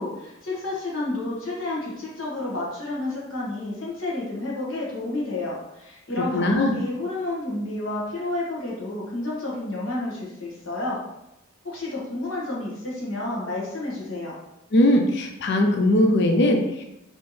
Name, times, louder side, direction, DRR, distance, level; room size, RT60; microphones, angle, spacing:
voice 1, 0.0-11.0 11.6-14.3, left 2 dB, 70° left, -5 dB, 1.5 m, -30 dB
voice 2, 6.3-6.8 14.7-16.8, left 1 dB, 55° left, 4 dB, 0.5 m, -20 dB
4.3 x 3.2 x 3.2 m, 0.88 s
head